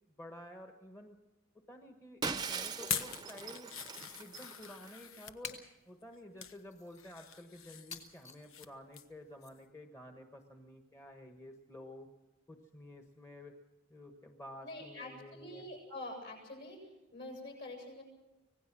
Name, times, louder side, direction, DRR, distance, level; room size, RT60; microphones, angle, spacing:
voice 1, 0.2-1.2 1.7-2.2 2.5-3.7 4.2-12.1 12.5-13.6 13.9-15.7, left 1 dB, 15° left, 4 dB, 1.2 m, -51 dB
Shatter, 2.2-4.9, right 5 dB, 20° right, 0.8 m, -40 dB
sound 1, 2.8-5.4 6.0-6.6 7.0-8.7 8.9-9.2 9.6-9.7, left 8 dB, 85° left, 1.2 m, -43 dB
sound 2, 4.0-4.2 5.4-5.8 6.5-7.1 7.9-8.5 9.4-9.5, left 4 dB, 35° left, 2.8 m, -49 dB
voice 2, 14.6-18.0, left 1 dB, 55° left, 2 dB, 7.9 m, -46 dB
25.5 x 18.0 x 6.1 m, 1.0 s
head